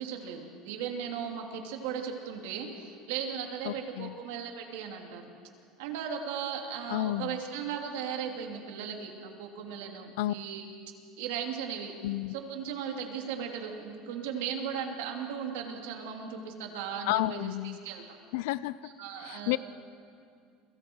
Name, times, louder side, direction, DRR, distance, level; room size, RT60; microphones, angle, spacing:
voice 1, 0.0-5.2 5.8-10.6 11.2-11.9 12.3-17.5 17.8-18.2 18.8-19.6, right 7 dB, 90° right, 2 dB, 3.0 m, -37 dB
voice 2, 3.6-4.1 6.9-7.4 10.2-10.3 12.0-12.3 17.1-17.8 18.3-18.8 19.2-19.6, left 16 dB, 80° left, 18 dB, 0.6 m, -31 dB
30.0 x 24.0 x 4.7 m, 2.3 s
cardioid pair, 165°, 0 cm